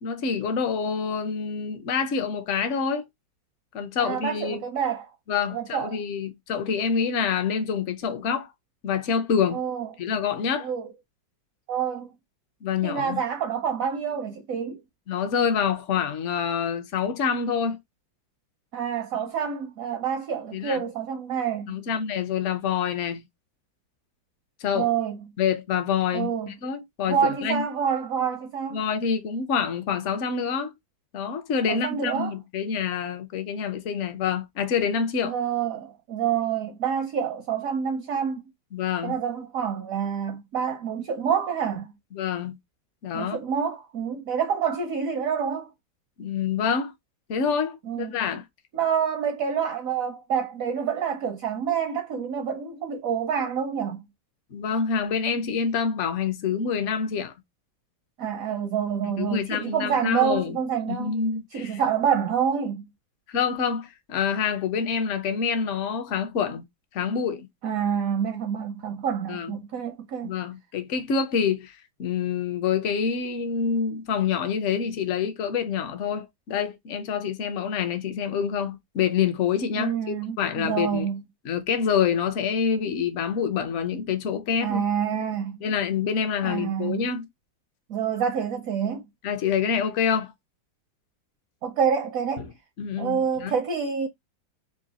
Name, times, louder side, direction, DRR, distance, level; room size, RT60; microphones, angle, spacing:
voice 1, 0.0-3.1 3.7-4.6 5.3-8.5 8.8-9.6 10.0-10.7 12.6-13.2 15.1-17.8 20.5-20.8 21.7-23.2 24.6-24.9 25.4-27.6 28.7-30.7 31.1-35.3 38.7-39.2 42.1-42.6 43.0-43.4 46.2-46.9 47.3-48.4 54.5-57.3 59.0-60.6 60.9-61.8 63.3-66.6 66.9-67.5 69.3-69.6 70.2-71.7 72.0-81.1 81.4-84.8 85.6-87.3 89.2-90.3 92.8-93.6, left 6 dB, 65° left, 0.7 m, -27 dB
voice 2, 4.0-5.1 5.5-6.0 9.5-9.9 10.6-10.9 11.7-12.1 12.8-14.8 18.7-21.8 24.7-25.2 26.1-26.5 27.1-28.8 31.7-32.3 35.2-38.4 39.0-41.9 43.1-45.7 47.8-48.2 48.7-54.0 58.2-61.1 61.5-62.9 67.6-70.3 79.7-81.2 84.6-85.6 86.4-87.1 87.9-89.0 91.6-92.4 93.0-94.1, right 7 dB, 70° right, 0.8 m, -27 dB
3.8 x 2.4 x 4.0 m
omnidirectional pair, 2.1 m